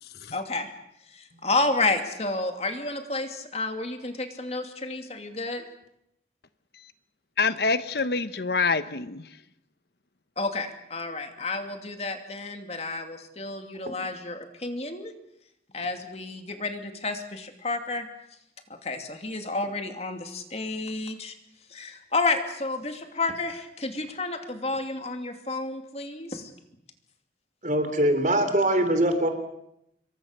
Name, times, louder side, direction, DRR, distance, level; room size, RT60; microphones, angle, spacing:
voice 1, 0.3-0.7 1.1-5.6 10.4-15.1 15.7-18.1 18.8-21.3 21.7-26.5, left 3 dB, 35° left, 6 dB, 2.7 m, -30 dB
voice 2, 7.4-9.3, left 4 dB, 60° left, 13 dB, 0.9 m, -26 dB
voice 3, 27.6-29.3, right 1 dB, 45° right, 8 dB, 3.6 m, -22 dB
27.0 x 23.0 x 6.7 m, 0.79 s
head